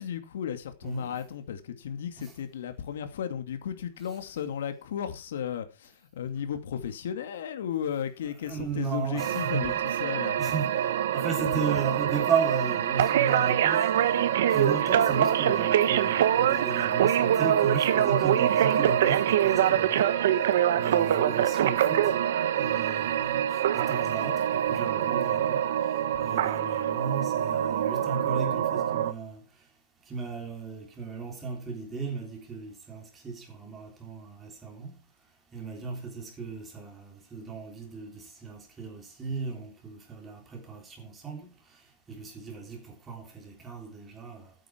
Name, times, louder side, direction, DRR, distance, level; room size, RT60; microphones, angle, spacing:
voice 1, 0.0-10.4, left 8 dB, 75° left, 2.4 m, -35 dB
voice 2, 0.8-1.2 8.5-9.8 10.4-10.9 11.1-13.9 14.5-20.5 20.7-22.1 22.5-25.7 26.2-29.4 30.1-35.0 35.5-41.5 42.1-44.5, right 5 dB, 10° right, 3.4 m, -35 dB
sound 1, 9.2-29.1, right 10 dB, 65° right, 1.3 m, -25 dB
13.5 x 9.1 x 4.6 m
supercardioid pair, 175°, 0 cm